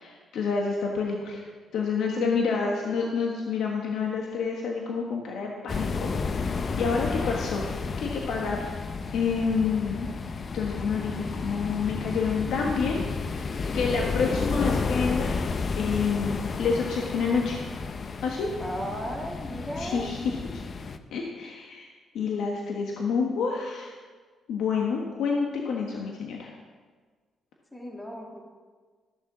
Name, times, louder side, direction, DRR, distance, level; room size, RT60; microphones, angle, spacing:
voice 1, 0.0-1.4 1.7-8.7 9.1-10.1 10.5-15.4 15.7-17.6 18.2-18.5 19.8-20.6 21.1-21.9 22.1-23.9 24.5-26.5, left 5 dB, 75° left, 0 dB, 1.4 m, -28 dB
sound 1, 5.7-21.0, left 4 dB, 40° left, 0.7 m, -32 dB
voice 2, 18.6-20.1 27.7-28.4, equal, 10° left, -1 dB, 2.0 m, -35 dB
14.0 x 7.1 x 6.2 m, 1.5 s
cardioid pair, 90°, 0 cm